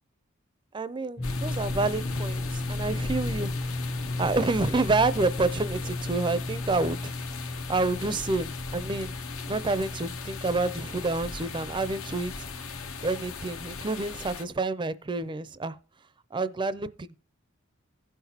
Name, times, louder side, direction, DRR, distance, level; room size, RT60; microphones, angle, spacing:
voice 1, 0.7-3.5 3.8-7.1 7.7-9.1 9.5-12.3 13.0-15.8 16.3-17.2, right 3 dB, 20° right, 0.4 m, -28 dB
sound 1, 1.2-14.4, left 4 dB, 75° left, 0.8 m, -39 dB
sound 2, 1.2-13.9, left 2 dB, 25° left, 0.6 m, -35 dB
16.0 x 5.8 x 2.8 m
head